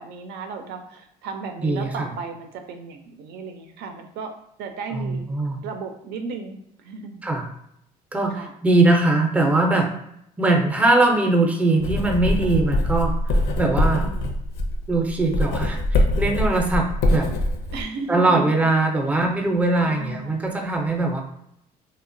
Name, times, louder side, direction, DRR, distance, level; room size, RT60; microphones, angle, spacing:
voice 1, 0.0-4.3 4.6-5.2 5.6-7.2 8.3-8.5 13.9-14.3 17.7-18.5 19.8-20.4, right 4 dB, 80° right, 5 dB, 0.4 m, -35 dB
voice 2, 1.6-2.1 4.9-5.6 7.2-7.5 8.1-9.9 10.4-13.1 13.6-14.1 14.9-17.3 18.1-21.2, right 2 dB, 10° right, 2 dB, 0.4 m, -21 dB
Writing, 11.8-17.8, left 1 dB, 80° left, 0.5 m, -23 dB
2.9 x 2.0 x 2.5 m, 0.75 s
cardioid pair, 110°, 17 cm